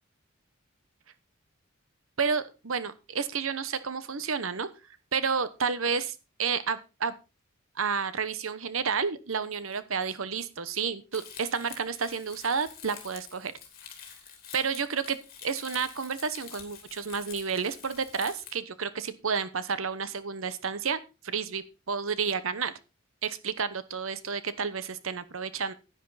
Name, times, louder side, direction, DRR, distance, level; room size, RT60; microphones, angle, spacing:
voice 1, 2.2-4.7 5.1-7.1 7.8-13.5 14.5-22.7 23.2-25.7, right 5 dB, 70° right, 14 dB, 1.0 m, -31 dB
Crumpling crinkling, 11.1-18.5, left 8 dB, 45° left, 3.2 m, -47 dB
10.5 x 10.5 x 4.1 m, 0.29 s
head